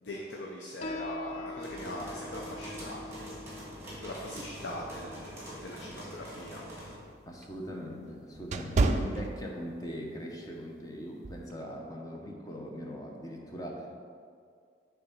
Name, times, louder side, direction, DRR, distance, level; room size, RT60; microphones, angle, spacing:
voice 1, 0.0-3.0 4.0-6.6, left 1 dB, 80° left, -2 dB, 0.7 m, -41 dB
Piano, 0.8-7.9, left 2 dB, 35° left, 0.3 m, -45 dB
sound 1, 1.6-6.9, equal, 15° right, 1.7 m, -44 dB
sound 2, 6.2-10.0 10.4-10.6 11.2-11.5, right 3 dB, 40° right, 0.3 m, -31 dB
voice 2, 7.3-13.9, equal, 20° left, 0 dB, 0.8 m, -40 dB
6.7 x 3.5 x 5.6 m, 2.2 s
head